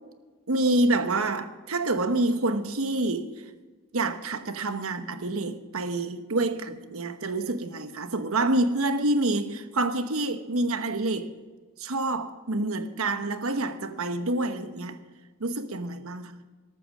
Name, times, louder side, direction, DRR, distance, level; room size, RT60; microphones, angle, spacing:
voice 1, 0.5-3.3 3.9-11.3 11.8-15.0 15.4-16.4, right 2 dB, 75° right, 1.0 m, -27 dB
14.0 x 13.0 x 6.2 m
head